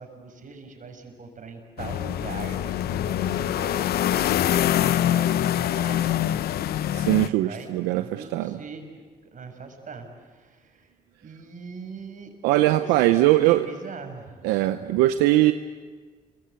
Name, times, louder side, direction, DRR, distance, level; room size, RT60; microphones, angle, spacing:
voice 1, 0.0-6.4 7.2-7.7 8.0-9.0 9.3-10.9 11.2-14.5 14.8-15.0, right 4 dB, 55° right, 5 dB, 6.3 m, -41 dB
sound 1, 1.8-7.3, left 11 dB, 75° left, 0.8 m, -24 dB
voice 2, 6.9-8.6 12.4-13.7 14.4-15.5, right 16 dB, 90° right, 10 dB, 0.8 m, -21 dB
28.5 x 24.0 x 8.3 m, 1.5 s
supercardioid pair, 55°, 16 cm